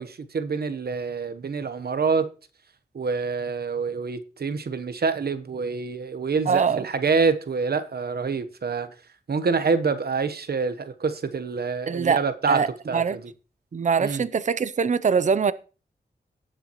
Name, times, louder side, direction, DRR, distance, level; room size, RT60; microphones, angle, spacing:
voice 1, 0.0-2.3 2.9-8.9 9.3-13.2 14.0-14.2, right 5 dB, 65° right, 1.0 m, -26 dB
voice 2, 6.5-6.9 11.9-12.2 12.5-12.7 12.9-13.2 13.7-15.5, right 6 dB, 45° right, 0.6 m, -22 dB
18.0 x 6.7 x 3.0 m
wide cardioid pair, 90°, 18 cm